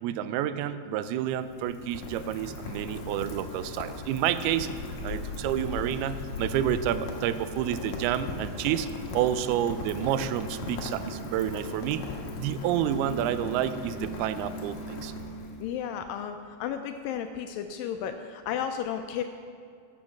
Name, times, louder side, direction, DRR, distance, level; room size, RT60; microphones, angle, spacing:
voice 1, 0.0-4.7 5.0-8.9 9.1-12.1 12.4-15.1, right 10 dB, 85° right, 12 dB, 2.5 m, -29 dB
Rain, 1.0-15.8, left 2 dB, 60° left, 2.5 m, -38 dB
voice 2, 15.6-19.2, left 8 dB, 80° left, 7 dB, 2.0 m, -33 dB
15.0 x 7.3 x 5.9 m, 2.4 s
omnidirectional pair, 4.4 m